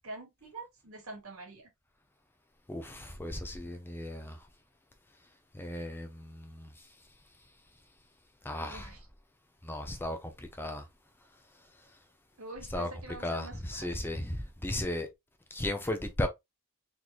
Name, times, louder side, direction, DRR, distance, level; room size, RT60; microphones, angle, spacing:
voice 1, 0.0-1.7 3.5-3.8 8.6-9.1 12.4-14.2, right 2 dB, 75° right, 2.0 m, -46 dB
voice 2, 2.7-4.4 5.5-6.9 8.4-8.9 9.6-10.9 12.7-12.9 13.2-15.1 15.5-16.3, left 1 dB, 10° left, 0.6 m, -35 dB
4.0 x 3.2 x 2.9 m
head